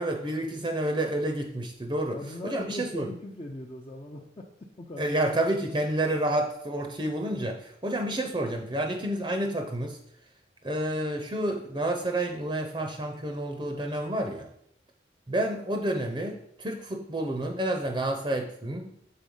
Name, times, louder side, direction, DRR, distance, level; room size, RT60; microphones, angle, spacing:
voice 1, 0.0-3.1 5.0-10.0 10.6-14.5 15.3-18.9, right 1 dB, 25° right, 4 dB, 0.7 m, -29 dB
voice 2, 2.1-5.2, left 1 dB, 30° left, -1 dB, 0.6 m, -40 dB
7.6 x 4.1 x 5.4 m, 0.72 s
head